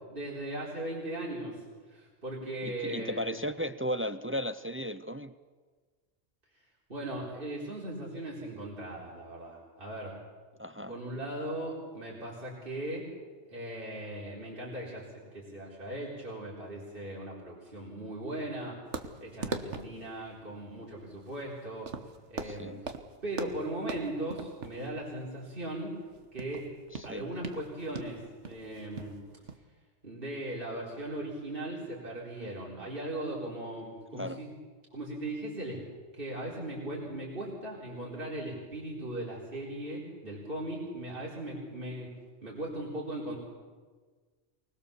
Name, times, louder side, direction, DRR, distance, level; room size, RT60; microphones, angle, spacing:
voice 1, 0.1-1.6 1.9-3.2 6.9-10.2 10.9-13.1 13.5-18.8 19.2-21.9 22.3-22.9 23.2-26.0 26.3-26.7 27.0-29.2 30.0-34.5 34.9-35.8 36.1-42.1 42.4-43.4, right 1 dB, 50° right, -5 dB, 4.3 m, -38 dB
voice 2, 2.6-5.3 10.6-10.9 22.4-22.8 26.9-27.3 34.1-34.4, equal, 20° right, 11 dB, 0.3 m, -35 dB
sound 1, 18.9-29.6, right 4 dB, 85° right, 1.6 m, -41 dB
24.5 x 20.5 x 7.0 m, 1.5 s
omnidirectional pair, 1.2 m